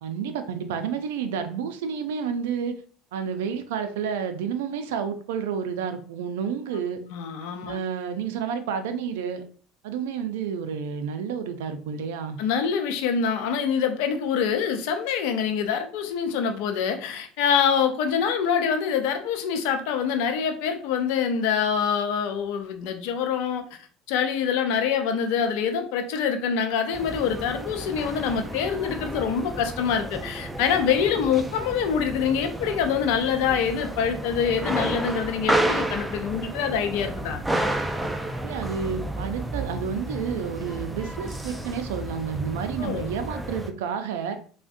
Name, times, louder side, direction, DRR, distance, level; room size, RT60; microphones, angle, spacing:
voice 1, 0.0-2.7 3.1-7.0 7.7-9.4 9.8-12.4 38.4-44.4, right 7 dB, 80° right, 8 dB, 0.4 m, -30 dB
voice 2, 7.1-7.8 12.4-23.6 24.1-37.4 42.8-43.1, left 7 dB, 75° left, 6 dB, 0.5 m, -25 dB
sound 1, 26.9-43.7, right 1 dB, 10° right, 0.4 m, -31 dB
3.4 x 2.1 x 2.5 m, 0.43 s
hypercardioid pair, 75°, 0 cm